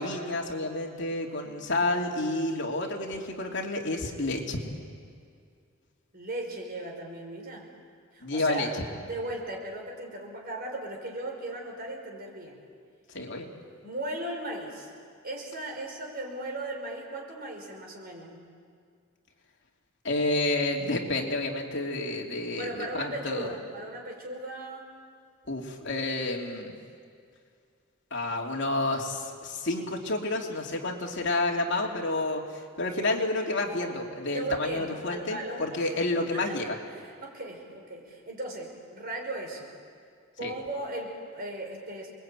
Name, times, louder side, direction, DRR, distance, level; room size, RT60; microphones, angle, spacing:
voice 1, 0.0-4.6 8.2-8.7 13.1-13.5 20.0-23.5 25.5-26.7 28.1-32.4 32.8-36.8 40.4-40.5, left 2 dB, 60° left, 0 dB, 3.0 m, -30 dB
voice 2, 6.1-7.7 8.1-8.7 9.0-12.6 13.8-14.9 15.2-18.4 22.5-24.8 34.3-39.7 40.4-42.1, right 1 dB, 50° right, 1 dB, 5.4 m, -37 dB
29.0 x 21.5 x 9.0 m, 2.2 s
head